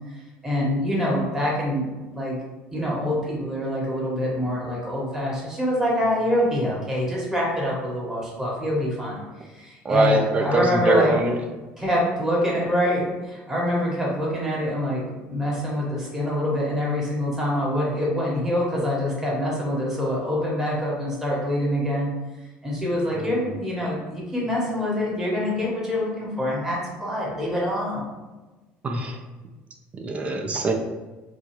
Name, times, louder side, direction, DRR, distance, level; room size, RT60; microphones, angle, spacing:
voice 1, 0.4-1.9 2.1-2.4 2.7-9.2 9.5-11.2 11.8-22.1 22.6-28.1, left 1 dB, 10° right, -5 dB, 1.5 m, -25 dB
voice 2, 9.8-11.3 23.2-23.3 28.8-29.2 29.9-30.7, right 2 dB, 30° right, 3 dB, 0.6 m, -23 dB
4.5 x 2.5 x 3.1 m, 1.2 s
cardioid pair, 120°, 5 cm